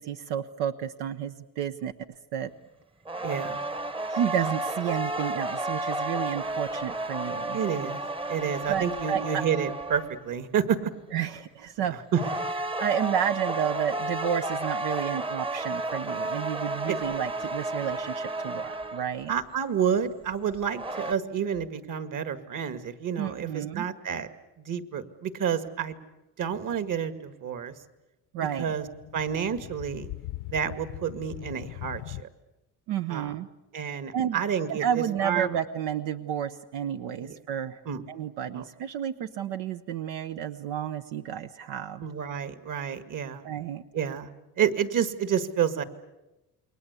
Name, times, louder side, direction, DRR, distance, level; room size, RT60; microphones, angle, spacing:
voice 1, 0.0-1.9 2.3-2.5 4.1-7.6 8.7-9.4 11.1-12.0 12.8-19.3 23.2-23.8 28.3-28.7 32.9-33.5 34.1-34.4 34.7-37.8 38.1-42.0 43.4-43.8, right 9 dB, 90° right, 8 dB, 1.0 m, -31 dB
sound 1, 3.0-10.2 12.1-19.2 20.5-21.1, right 2 dB, 15° right, 0.9 m, -32 dB
voice 2, 3.2-3.6 7.5-8.0 8.3-10.9 11.8-12.2 16.9-17.0 19.3-24.3 24.6-26.0 26.4-27.7 28.6-28.8 29.1-30.1 30.5-32.3 33.1-33.4 33.7-35.6 37.2-37.4 37.9-38.0 38.5-38.6 42.0-43.4 43.9-44.3 44.6-45.8, right 8 dB, 55° right, 10 dB, 2.1 m, -29 dB
sound 2, 28.5-32.2, left 16 dB, 80° left, 0.9 m, -40 dB
29.0 x 22.5 x 8.3 m, 1.0 s
cardioid pair, 95°, 38 cm